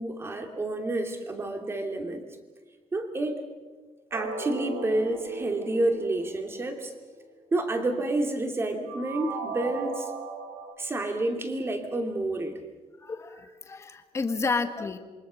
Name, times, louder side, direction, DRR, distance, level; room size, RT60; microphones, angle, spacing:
voice 1, 0.0-2.2 2.9-3.4 4.1-6.9 7.5-10.1 10.8-12.6, right 2 dB, 20° right, 4 dB, 2.8 m, -29 dB
sound 1, 4.1-7.1 8.9-10.7, right 3 dB, 60° right, 3.8 m, -37 dB
voice 2, 13.0-15.0, left 4 dB, 25° left, 7 dB, 1.6 m, -30 dB
27.5 x 24.0 x 6.4 m, 1.3 s
cardioid pair, 175°, 12 cm